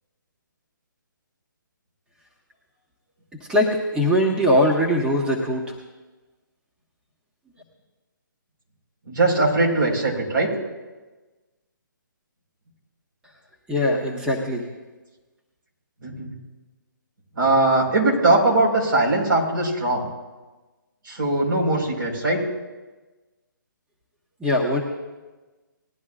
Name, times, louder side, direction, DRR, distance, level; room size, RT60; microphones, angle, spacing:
voice 1, 3.5-5.7 13.7-14.7 24.4-24.8, left 1 dB, 5° right, -3 dB, 1.3 m, -21 dB
voice 2, 9.1-10.5 16.0-16.3 17.3-20.1 21.0-22.4, right 2 dB, 75° right, -2 dB, 4.6 m, -20 dB
20.0 x 11.0 x 2.5 m, 1.2 s
hypercardioid pair, 150°, 11 cm